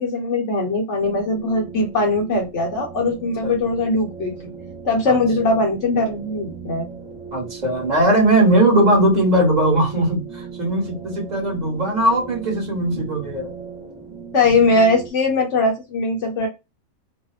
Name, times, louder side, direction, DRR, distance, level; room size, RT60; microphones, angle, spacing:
voice 1, 0.0-4.3 4.8-6.9 14.3-16.5, left 2 dB, 60° left, 0.9 m, -20 dB
sound 1, 1.0-15.1, right 6 dB, 5° right, 0.9 m, -38 dB
voice 2, 7.3-13.5, right 1 dB, 35° right, 1.0 m, -19 dB
2.7 x 2.0 x 2.3 m
omnidirectional pair, 1.5 m